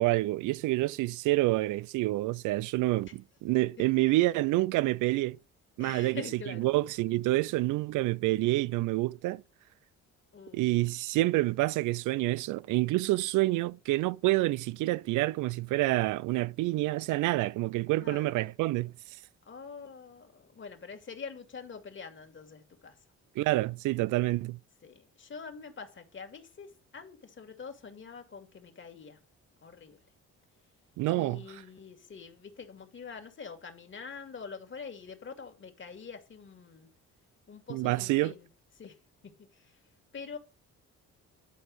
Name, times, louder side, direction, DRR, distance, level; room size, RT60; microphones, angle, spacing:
voice 1, 0.0-5.4 5.8-6.2 6.6-9.4 10.5-18.9 23.4-24.6 31.0-31.4 37.7-38.3, right 18 dB, 90° right, 0.4 m, -28 dB
voice 2, 5.8-6.7 10.3-10.6 17.9-18.3 19.4-23.0 24.8-29.2 29.6-30.0 31.1-36.9 37.5-38.5 38.8-39.0 39.2-39.8 40.1-40.4, left 5 dB, 40° left, 2.4 m, -45 dB
11.5 x 4.4 x 7.8 m
cardioid pair, 90°, 30 cm